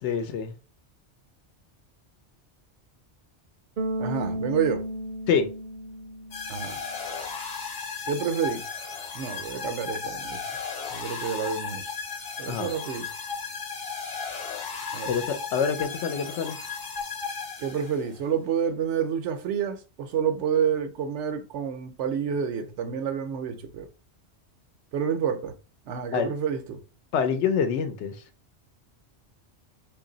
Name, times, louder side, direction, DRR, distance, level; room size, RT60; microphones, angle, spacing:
voice 1, 0.0-0.5 5.3-5.5 12.5-12.7 15.1-16.6 26.1-26.3 27.1-28.2, left 6 dB, 85° left, 0.9 m, -26 dB
Bass guitar, 3.8-6.9, right 1 dB, 55° right, 0.6 m, -33 dB
voice 2, 4.0-4.8 6.5-6.8 8.1-8.6 9.1-10.4 10.9-11.9 12.4-13.1 14.9-15.2 17.6-23.9 24.9-25.5 25.9-26.8, right 7 dB, 85° right, 0.9 m, -29 dB
sound 1, 6.3-18.1, left 5 dB, 45° left, 0.9 m, -35 dB
3.0 x 2.6 x 3.8 m
omnidirectional pair, 1.2 m